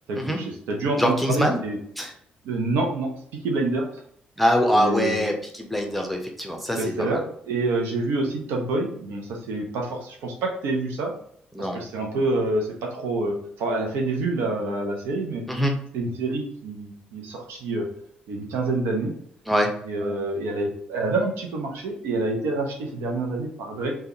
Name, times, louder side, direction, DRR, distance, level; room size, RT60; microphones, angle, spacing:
voice 1, 0.1-1.8 2.4-3.9 4.7-5.3 6.8-11.1 11.6-15.4 15.9-17.9 18.3-19.1 19.8-24.0, right 2 dB, 60° right, 0 dB, 0.6 m, -27 dB
voice 2, 1.0-1.6 2.0-2.1 4.4-7.2 11.5-11.8 15.5-15.8 19.5-19.7, equal, ahead, 2 dB, 0.7 m, -23 dB
3.5 x 2.2 x 2.9 m, 0.66 s
figure-of-eight pair, 40°, 4 cm